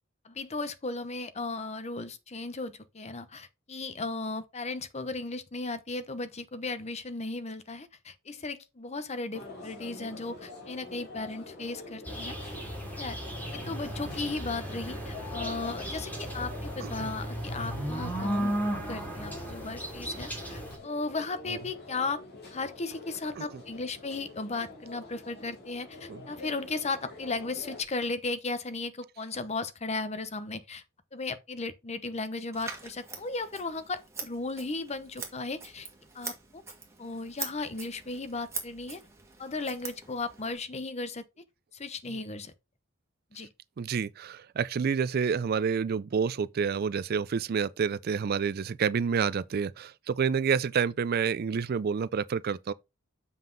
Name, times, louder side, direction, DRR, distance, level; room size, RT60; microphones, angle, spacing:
voice 1, 0.2-12.3 13.0-13.2 13.5-18.5 18.9-22.2 22.5-30.8 31.1-35.9 36.1-36.6 37.0-39.0 39.4-41.3 41.7-42.5 43.3-43.5, left 3 dB, 35° left, 0.8 m, -36 dB
sound 1, 9.3-27.8, left 3 dB, 55° left, 2.9 m, -46 dB
sound 2, 12.1-20.8, equal, 10° left, 2.8 m, -35 dB
Scissors, 32.5-40.5, right 4 dB, 15° right, 2.0 m, -43 dB
voice 2, 43.8-52.7, right 6 dB, 50° right, 0.4 m, -28 dB
7.4 x 5.5 x 3.9 m
head